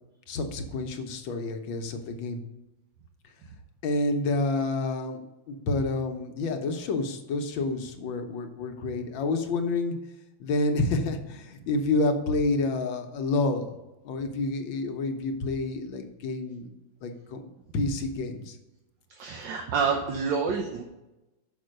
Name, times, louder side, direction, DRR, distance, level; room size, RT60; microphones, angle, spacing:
voice 1, 0.3-2.4 3.8-10.0 10.4-13.7 14.0-16.7 17.0-17.4 17.7-18.6, left 2 dB, 85° left, 5 dB, 1.7 m, -29 dB
voice 2, 19.1-20.8, right 5 dB, 75° right, 2 dB, 1.5 m, -28 dB
6.5 x 5.2 x 6.4 m, 0.97 s
omnidirectional pair, 2.0 m